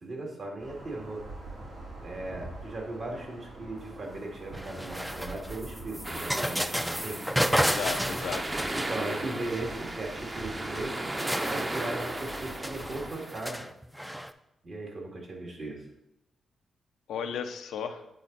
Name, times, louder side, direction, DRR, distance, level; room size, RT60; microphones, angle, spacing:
voice 1, 0.0-1.3 2.0-7.2 8.7-11.0 11.4-13.7 14.6-15.9, right 2 dB, 55° right, 0 dB, 2.1 m, -38 dB
sound 1, 0.6-13.1, right 2 dB, 85° right, 2.9 m, -45 dB
sound 2, 4.5-9.3 10.4-10.5 10.8-14.3, equal, 5° right, 0.4 m, -32 dB
sound 3, 6.0-13.4, right 1 dB, 30° right, 0.8 m, -36 dB
voice 2, 7.6-8.6 17.1-18.0, left 7 dB, 85° left, 7 dB, 0.6 m, -35 dB
8.8 x 4.1 x 4.0 m, 0.85 s
cardioid pair, 60°, 0 cm